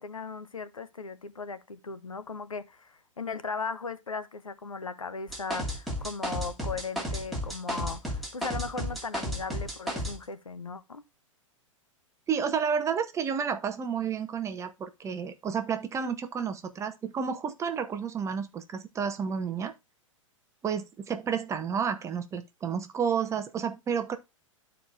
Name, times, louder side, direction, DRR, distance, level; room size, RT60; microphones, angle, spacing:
voice 1, 0.0-11.0, left 4 dB, 80° left, 0.8 m, -37 dB
sound 1, 5.3-10.1, equal, ahead, 2.4 m, -33 dB
voice 2, 12.3-19.7 20.6-24.2, right 7 dB, 15° right, 0.9 m, -31 dB
13.0 x 4.5 x 2.4 m
figure-of-eight pair, 105°, 17 cm